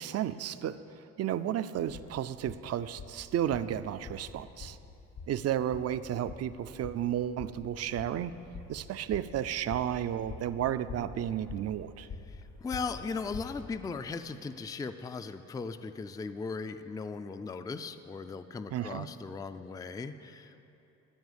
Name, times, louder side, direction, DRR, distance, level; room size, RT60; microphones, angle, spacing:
voice 1, 0.0-4.8 5.3-8.3 8.7-12.1 18.7-19.1, right 10 dB, 55° right, 13 dB, 0.5 m, -33 dB
sound 1, 1.7-13.7, left 4 dB, 55° left, 1.3 m, -47 dB
voice 2, 12.3-20.6, left 4 dB, 10° left, 10 dB, 0.3 m, -38 dB
13.0 x 4.8 x 7.9 m, 2.8 s
cardioid pair, 90°, 30 cm